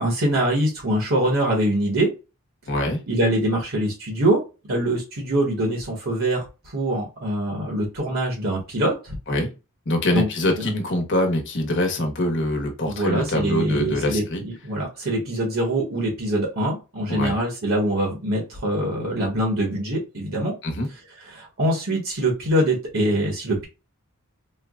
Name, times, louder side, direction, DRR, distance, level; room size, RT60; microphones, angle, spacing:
voice 1, 0.0-2.1 3.1-4.4 4.7-6.5 6.7-9.2 10.1-10.3 10.6-10.7 12.9-20.5 21.3-23.7, right 1 dB, 65° right, -1 dB, 1.3 m, -24 dB
voice 2, 2.7-3.0 9.3-9.5 9.9-14.4 17.1-17.4 20.6-20.9, left 1 dB, 55° left, 3 dB, 1.0 m, -24 dB
4.5 x 2.2 x 2.3 m, 0.29 s
head